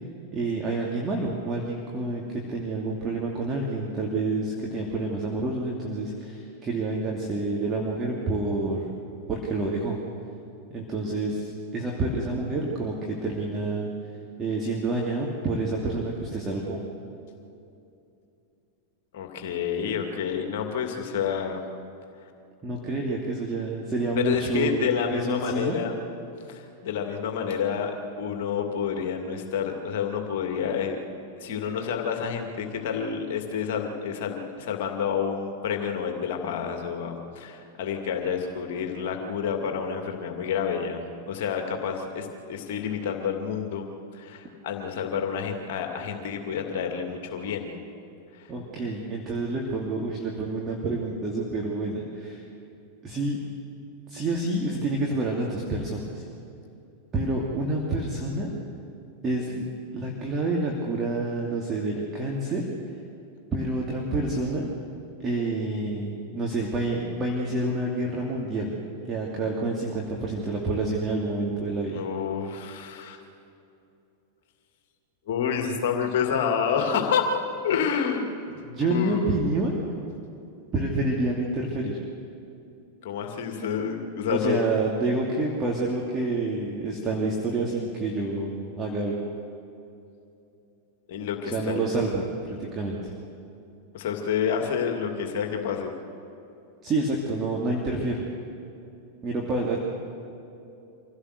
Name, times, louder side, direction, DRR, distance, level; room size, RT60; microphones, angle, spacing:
voice 1, 0.3-8.9 9.3-10.0 10.7-13.9 14.4-16.8 22.6-25.8 48.5-52.4 53.0-53.4 54.1-56.2 57.1-58.5 59.2-59.6 59.9-62.6 63.5-64.7 65.2-68.7 69.1-72.0 78.6-79.8 80.7-82.0 84.3-89.1 91.5-93.1 96.8-98.3 99.2-99.8, right 2 dB, 25° right, -2 dB, 2.8 m, -28 dB
voice 2, 19.1-21.6 24.2-25.9 26.5-31.0 31.4-41.0 41.3-43.9 44.1-47.7 48.3-48.5 71.9-73.2 75.3-77.3 77.6-78.3 78.8-79.2 83.0-84.6 91.1-91.8 93.9-95.9, left 7 dB, 50° left, 4 dB, 2.4 m, -29 dB
25.5 x 16.5 x 6.7 m, 2.7 s
figure-of-eight pair, 90°, 0 cm